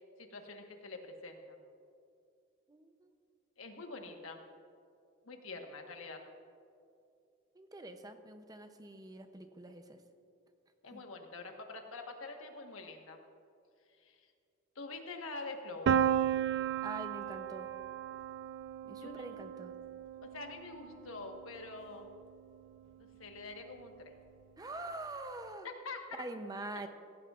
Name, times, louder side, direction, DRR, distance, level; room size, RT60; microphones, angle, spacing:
voice 1, 0.2-1.6 3.6-4.4 5.3-6.2 10.8-13.2 14.0-14.3 14.7-15.9 18.9-19.3 20.2-22.1 23.0-24.1 25.6-26.2, left 3 dB, 75° left, 4 dB, 1.3 m, -46 dB
voice 2, 2.7-3.1 7.5-10.0 10.9-11.0 16.8-17.7 18.8-19.7 24.6-25.7 26.2-26.9, right 2 dB, 20° right, 7 dB, 0.6 m, -45 dB
Piano, 15.9-21.6, right 9 dB, 60° right, 0.3 m, -34 dB
17.5 x 15.0 x 2.4 m, 2.5 s
head